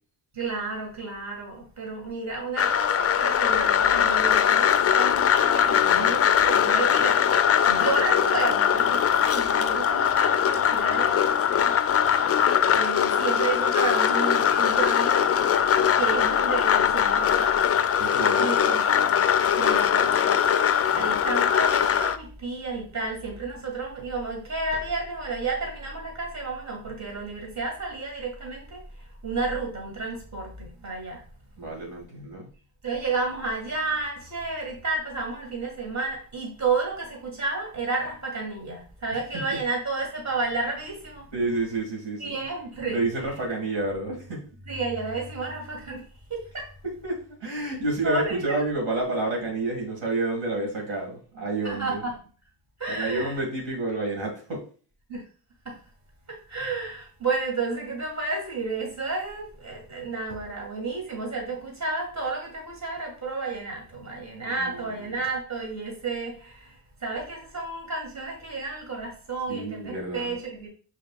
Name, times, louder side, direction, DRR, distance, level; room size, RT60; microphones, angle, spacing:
voice 1, 0.3-11.8 12.7-15.3 15.9-17.6 18.4-19.0 19.5-20.2 20.9-31.2 32.8-41.3 42.2-43.1 44.7-46.7 48.0-48.6 51.6-52.2 52.8-53.4 55.1-55.2 55.7-55.8 56.3-70.7, right 3 dB, 35° right, 0 dB, 1.9 m, -31 dB
sound 1, 2.6-22.2, left 8 dB, 30° left, 0.4 m, -21 dB
voice 2, 18.0-18.6 20.9-21.2 31.6-32.5 41.3-42.3 42.9-44.5 46.8-52.0 52.9-54.6 64.4-65.2 69.5-70.3, right 2 dB, 60° right, -1 dB, 2.1 m, -30 dB
5.0 x 4.2 x 2.4 m, 0.40 s
supercardioid pair, 45°, 49 cm